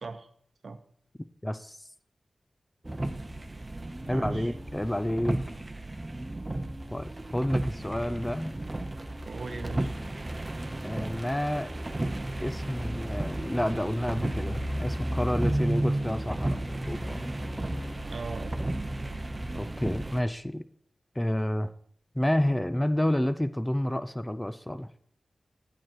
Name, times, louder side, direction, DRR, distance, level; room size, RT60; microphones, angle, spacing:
voice 1, 1.4-1.8 4.1-5.4 6.9-8.5 10.8-11.7 12.4-17.2 19.5-20.6 21.2-21.7 22.1-24.9, left 1 dB, 10° left, 12 dB, 0.5 m, -29 dB
sound 1, 2.8-20.2, right 1 dB, 25° right, 0.8 m, -33 dB
voice 2, 4.0-4.5 9.3-10.0 18.1-18.6, right 4 dB, 70° right, 8 dB, 0.8 m, -39 dB
9.1 x 7.7 x 4.5 m, 0.63 s
wide cardioid pair, 80°, 0 cm